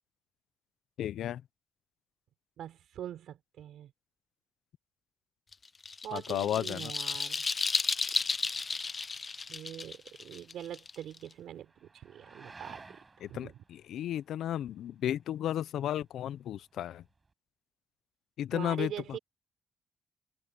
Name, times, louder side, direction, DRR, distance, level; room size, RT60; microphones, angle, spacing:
voice 1, 1.0-1.4 6.1-6.9 13.2-17.0 18.4-18.9, left 11 dB, 75° left, 0.7 m, -33 dB
voice 2, 2.6-3.9 6.0-7.5 9.5-13.0 13.3-13.6 18.5-19.2, right 10 dB, 75° right, 4.1 m, -43 dB
sound 1, 5.5-11.3, left 4 dB, 30° left, 0.6 m, -33 dB
sound 2, 7.4-17.3, right 3 dB, 25° right, 6.3 m, -58 dB
cardioid pair, 90°, 0 cm